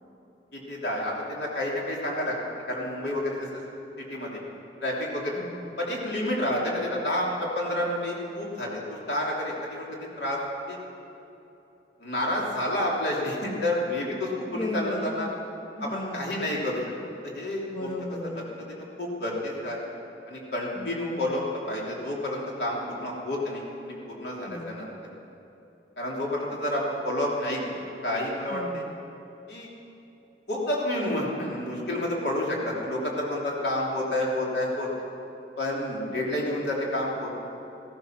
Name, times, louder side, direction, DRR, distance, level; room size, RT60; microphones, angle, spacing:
voice 1, 0.5-2.4 2.7-3.5 4.1-4.4 4.8-5.4 5.8-9.9 10.2-10.4 10.7-10.8 12.0-15.3 15.8-16.8 17.2-17.9 18.7-19.8 20.3-24.9 26.0-27.7 28.0-28.8 29.5-29.7 30.5-34.9 35.6-37.3, left 1 dB, 70° left, -3 dB, 3.2 m, -29 dB
voice 2, 5.4-5.7 14.5-16.4 17.7-18.5 20.8-21.4 24.5-24.8 28.5-29.0, left 1 dB, 30° left, 2 dB, 0.8 m, -36 dB
15.0 x 14.5 x 5.9 m, 2.9 s
head